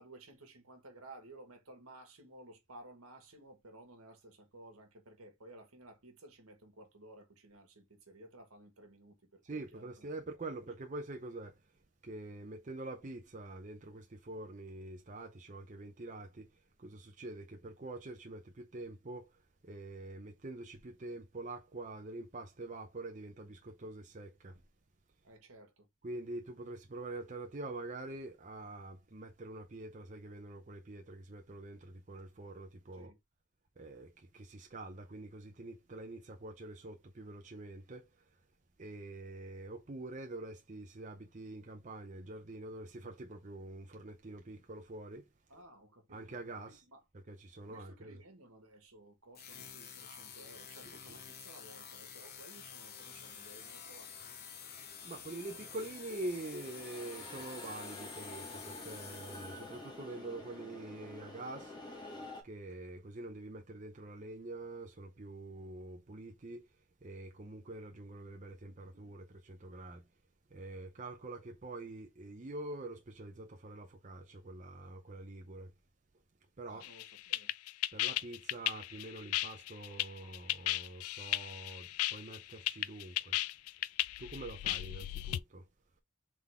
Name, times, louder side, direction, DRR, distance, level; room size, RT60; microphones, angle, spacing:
voice 1, 0.0-10.1 25.2-25.9 32.9-33.2 45.5-47.0 47.6-54.4 76.7-77.5 82.4-82.5, right 1 dB, 80° right, 1.5 m, -56 dB
voice 2, 9.4-11.5 12.0-16.5 16.8-19.3 19.6-24.6 26.0-33.1 33.8-38.1 38.8-45.2 46.1-46.8 47.3-48.2 50.8-51.0 55.0-61.7 62.4-66.7 67.0-70.0 70.5-75.7 76.6-76.8 77.9-83.4 84.2-85.6, right 2 dB, 35° right, 0.6 m, -45 dB
sound 1, 49.3-59.9, left 7 dB, 45° left, 0.7 m, -50 dB
sound 2, 50.8-62.4, left 1 dB, 20° left, 1.1 m, -51 dB
sound 3, 76.8-85.4, left 15 dB, 80° left, 0.3 m, -35 dB
3.7 x 3.7 x 3.5 m
head